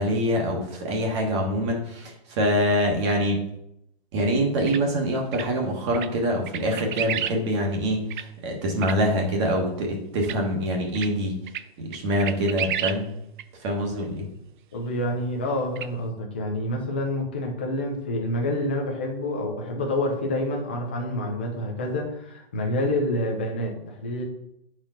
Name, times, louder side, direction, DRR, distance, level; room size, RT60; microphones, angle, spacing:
voice 1, 0.0-3.4 4.1-11.3 11.8-13.1 13.6-14.3, equal, 30° right, 0 dB, 1.1 m, -25 dB
sound 1, 4.7-4.8 5.3-5.5 5.9-6.1 6.5-7.4 7.7-7.8 8.1-8.2 8.8-9.0 10.2-10.4 10.9-11.1 11.5-11.6 11.9-13.0 13.4-13.5 15.7-15.9, right 10 dB, 55° right, 0.5 m, -30 dB
voice 2, 14.7-24.2, left 1 dB, 10° left, 0 dB, 0.3 m, -28 dB
9.5 x 4.4 x 3.8 m, 0.80 s
hypercardioid pair, 170°, 30 cm